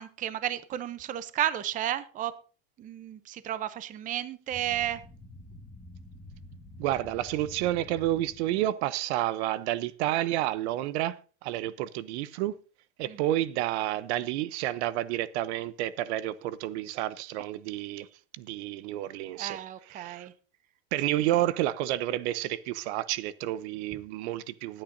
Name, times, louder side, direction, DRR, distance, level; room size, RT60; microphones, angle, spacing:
voice 1, 0.0-2.4 2.8-5.0 13.1-13.2 19.4-20.3, right 12 dB, 25° right, 0.6 m, -33 dB
sound 1, 4.5-8.7, left 1 dB, 5° left, 1.6 m, -48 dB
voice 2, 6.8-12.6 13.0-18.1 18.4-20.3 20.9-24.8, right 14 dB, 70° right, 0.8 m, -30 dB
20.0 x 8.9 x 2.6 m
supercardioid pair, 140°, 35 cm